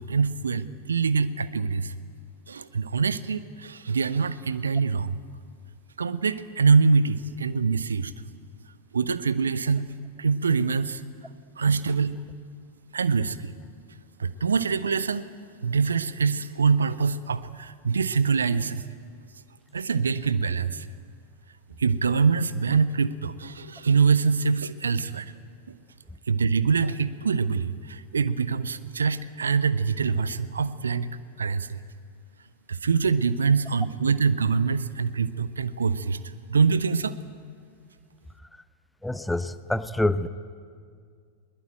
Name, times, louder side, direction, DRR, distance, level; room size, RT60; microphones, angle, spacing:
voice 1, 0.0-1.9 2.5-5.2 6.0-8.1 8.9-9.9 10.2-11.0 11.6-12.2 12.9-13.5 14.2-15.3 15.6-18.9 19.7-20.9 21.8-25.3 25.7-25.8 26.3-31.1 31.4-31.8 32.7-36.2 36.5-37.1, right 5 dB, 70° right, 15 dB, 0.8 m, -24 dB
voice 2, 39.0-40.3, left 1 dB, 5° left, 15 dB, 0.7 m, -26 dB
21.0 x 20.0 x 9.0 m, 2.1 s
figure-of-eight pair, 90°, 0 cm